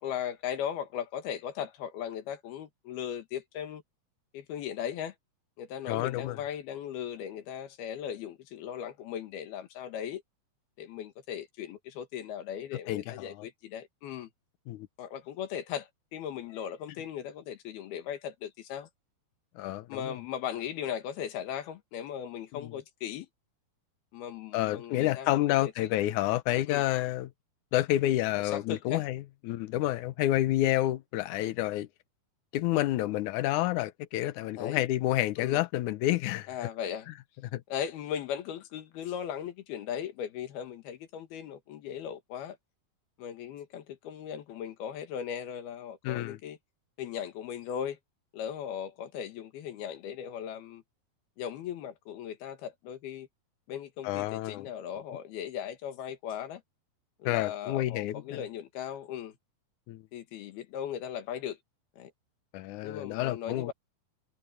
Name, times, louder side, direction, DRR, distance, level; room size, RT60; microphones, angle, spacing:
voice 1, 0.0-3.8 4.3-5.1 5.6-10.2 10.8-14.3 15.0-18.9 19.9-23.3 24.1-26.0 26.7-26.8 28.4-29.0 34.6-34.8 35.4-35.6 36.5-37.1 37.7-42.6 43.2-46.6 47.0-48.0 48.3-50.8 51.4-53.3 53.7-56.6 57.2-59.4 60.1-61.6 62.0-62.1 62.8-63.7, left 9 dB, 90° left, 3.7 m, -38 dB
voice 2, 5.9-6.4 12.9-13.5 14.7-14.9 19.6-20.2 22.5-22.7 24.5-27.3 27.7-31.9 32.5-36.5 37.5-37.6 46.0-46.4 54.0-54.7 57.3-58.4 59.9-60.0 62.5-63.7, left 15 dB, 70° left, 2.0 m, -29 dB
omnidirectional pair, 4.3 m